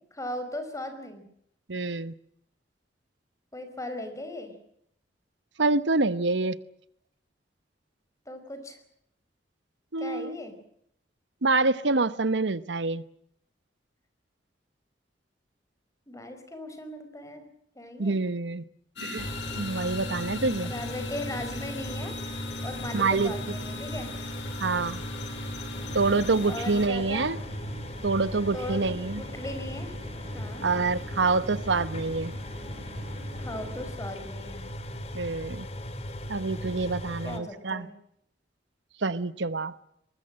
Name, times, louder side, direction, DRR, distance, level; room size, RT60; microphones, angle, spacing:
voice 1, 0.1-1.2 3.5-4.5 8.2-8.8 10.0-10.5 16.1-17.4 17.7-18.2 20.6-22.2 22.6-24.2 26.4-27.4 28.5-29.9 30.3-30.6 33.4-34.7 37.2-37.9, left 1 dB, 20° left, 8 dB, 5.1 m, -38 dB
voice 2, 1.7-2.1 5.6-6.6 9.9-10.4 11.4-13.0 18.0-18.6 19.0-19.3 19.6-20.7 22.9-23.3 24.6-25.0 25.9-27.4 28.0-29.2 30.6-32.3 35.1-35.7 36.3-37.9 39.0-39.7, right 3 dB, 85° right, 15 dB, 1.0 m, -26 dB
sound 1, 19.0-26.9, left 2 dB, 80° left, 4.6 m, -39 dB
sound 2, 19.2-37.4, equal, 35° left, 2.8 m, -38 dB
sound 3, 25.7-33.9, equal, 35° right, 5.7 m, -45 dB
23.5 x 21.0 x 7.6 m, 0.72 s
head